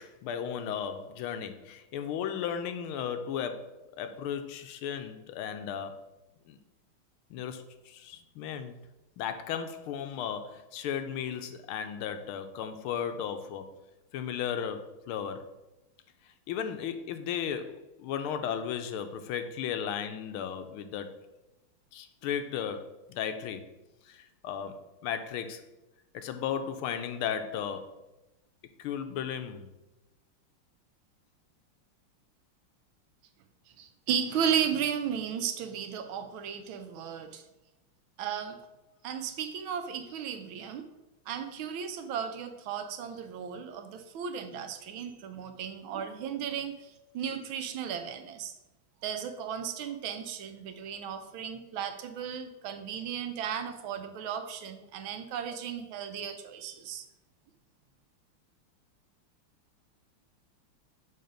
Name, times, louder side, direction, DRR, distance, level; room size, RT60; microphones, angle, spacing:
voice 1, 0.0-6.1 6.4-6.6 7.3-8.8 9.2-13.7 14.1-15.5 16.2-21.2 21.9-23.7 24.0-25.7 26.1-27.9 28.8-29.7, left 8 dB, 85° left, 8 dB, 1.5 m, -35 dB
voice 2, 33.8-37.4 38.2-38.6 39.0-40.9 41.3-48.5 49.0-57.0, right 8 dB, 75° right, 8 dB, 1.4 m, -35 dB
6.8 x 3.9 x 5.1 m, 0.98 s
omnidirectional pair, 2.3 m